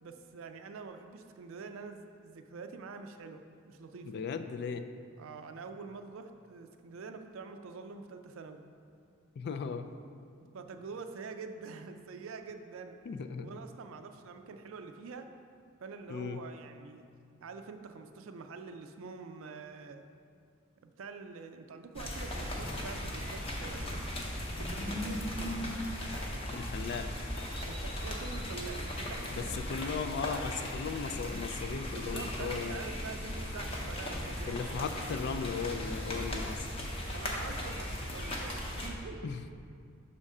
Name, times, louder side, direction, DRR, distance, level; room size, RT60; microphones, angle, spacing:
voice 1, 0.0-4.1 5.2-8.6 10.5-13.0 13.4-15.3 15.8-17.0 17.4-20.1 20.8-24.1 24.6-25.7 27.6-29.9 31.9-35.4 35.7-35.8 37.1-39.3, right 4 dB, 65° right, 7 dB, 0.4 m, -46 dB
voice 2, 4.1-4.9 9.4-9.9 13.1-13.5 16.1-16.5 26.5-27.1 29.3-32.8 34.5-36.9 39.2-39.4, left 5 dB, 50° left, 8 dB, 0.3 m, -37 dB
sound 1, 21.9-38.9, left 1 dB, 25° left, 0.7 m, -37 dB
6.5 x 3.6 x 5.3 m, 2.3 s
head